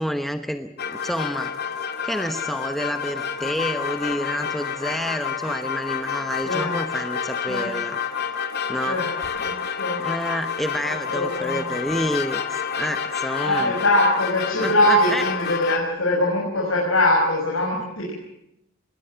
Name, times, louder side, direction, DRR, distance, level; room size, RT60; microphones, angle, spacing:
voice 1, 0.0-1.6 2.0-8.0 8.7-9.0 10.0-13.8 14.5-15.2, equal, ahead, 7 dB, 1.0 m, -29 dB
sound 1, 0.8-15.8, left 7 dB, 55° left, 2.0 m, -29 dB
voice 2, 9.4-10.0 10.8-11.7 13.4-18.1, left 1 dB, 70° left, -3 dB, 6.0 m, -22 dB
20.5 x 17.5 x 8.8 m, 0.79 s
head